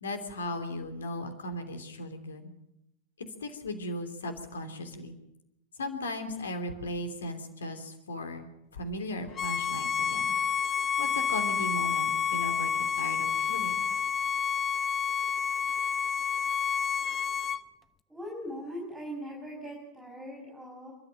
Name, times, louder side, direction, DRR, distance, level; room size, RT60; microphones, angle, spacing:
voice 1, 0.0-2.5 3.4-5.2 5.8-8.5 8.7-10.3 11.0-13.8, left 1 dB, 70° left, 7 dB, 3.1 m, -37 dB
Bowed string instrument, 9.4-17.6, left 7 dB, 25° left, 0.8 m, -29 dB
voice 2, 18.1-20.9, equal, 5° right, -2 dB, 5.8 m, -40 dB
29.0 x 13.0 x 7.8 m, 0.87 s
figure-of-eight pair, 90°, 0 cm